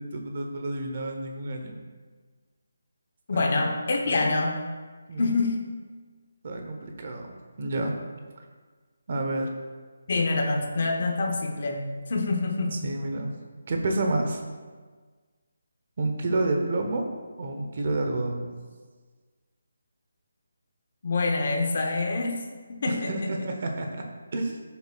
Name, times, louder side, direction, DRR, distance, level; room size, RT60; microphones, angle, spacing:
voice 1, 0.0-1.8 3.3-3.5 4.1-4.2 5.1-5.3 6.4-7.3 7.6-8.0 9.1-9.5 12.7-13.3 13.7-14.4 16.0-17.1 17.4-18.5 22.9-24.0 24.3-24.6, right 2 dB, 30° right, 3 dB, 0.9 m, -29 dB
voice 2, 3.3-4.7 5.2-5.7 10.1-12.8 21.0-23.3, left 3 dB, 35° left, 2 dB, 1.0 m, -26 dB
14.0 x 6.9 x 2.4 m, 1.5 s
hypercardioid pair, 180°, 0 cm